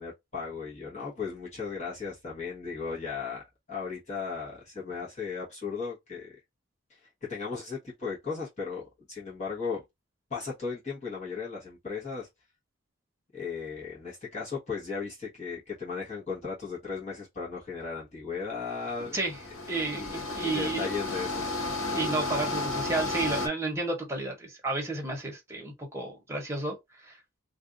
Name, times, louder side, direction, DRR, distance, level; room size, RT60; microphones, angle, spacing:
voice 1, 0.0-3.4 3.7-6.4 6.9-9.8 10.3-12.3 13.3-19.2 19.9-21.5, left 5 dB, 35° left, 1.1 m, -36 dB
sound 1, 18.8-23.5, left 2 dB, 70° left, 1.1 m, -33 dB
voice 2, 19.0-19.4 19.7-20.9 21.9-26.7 27.0-27.2, right 2 dB, 15° right, 1.1 m, -32 dB
2.6 x 2.3 x 3.8 m
head